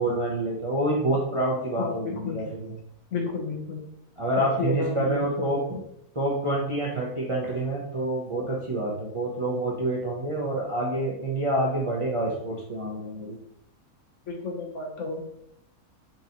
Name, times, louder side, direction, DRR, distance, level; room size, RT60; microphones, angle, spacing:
voice 1, 0.0-2.7 4.2-5.8 6.1-13.4, right 1 dB, 35° right, -5 dB, 0.5 m, -27 dB
voice 2, 1.7-2.4 3.1-3.8 4.4-5.8 14.3-15.3, left 4 dB, 60° left, 0 dB, 1.1 m, -32 dB
5.4 x 2.6 x 2.8 m, 0.75 s
omnidirectional pair, 1.5 m